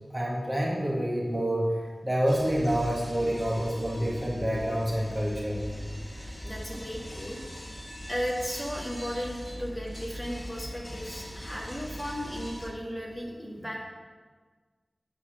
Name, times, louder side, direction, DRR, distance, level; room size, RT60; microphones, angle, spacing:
voice 1, 0.1-1.7 2.0-5.6, equal, 20° right, -4 dB, 1.8 m, -27 dB
sound 1, 2.3-12.7, equal, 30° left, 1.4 m, -41 dB
voice 2, 6.4-7.4 8.1-13.8, equal, 10° left, -4 dB, 2.1 m, -35 dB
9.6 x 4.1 x 6.4 m, 1.4 s
wide cardioid pair, 50°, 0 cm